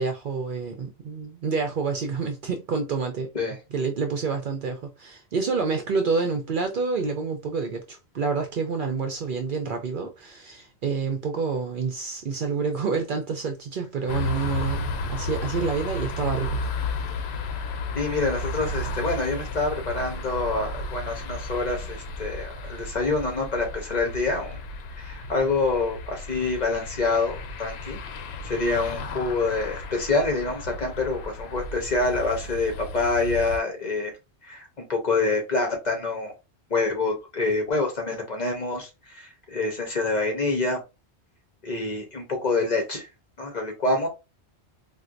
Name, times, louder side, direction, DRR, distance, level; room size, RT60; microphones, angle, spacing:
voice 1, 0.0-3.3 3.7-16.6, right 4 dB, 60° right, 0.6 m, -28 dB
sound 1, 14.1-33.6, left 2 dB, 70° left, 0.8 m, -33 dB
voice 2, 17.9-24.6 25.0-34.2 34.4-36.3 36.7-40.8 41.6-43.1 43.4-44.1, left 3 dB, 45° left, 0.9 m, -26 dB
4.3 x 2.2 x 2.5 m
omnidirectional pair, 1.1 m